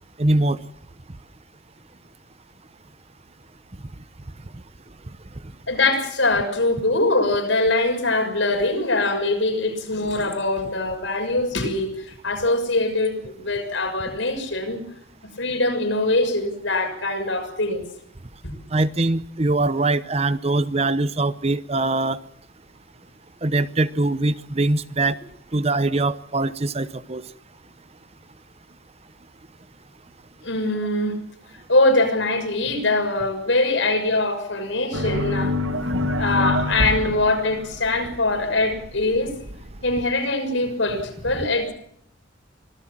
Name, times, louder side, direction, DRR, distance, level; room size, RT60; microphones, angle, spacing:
voice 1, 0.2-0.6 18.7-22.2 23.4-25.2 25.5-27.2, right 2 dB, 30° right, 14 dB, 0.8 m, -22 dB
voice 2, 5.7-14.8 15.4-17.8 30.4-31.2 31.7-35.5 36.2-39.3 39.8-41.7, left 2 dB, 75° left, 5 dB, 6.3 m, -22 dB
sound 1, 34.9-40.0, left 1 dB, 75° right, 1.9 m, -27 dB
25.5 x 18.0 x 7.5 m, 0.71 s
head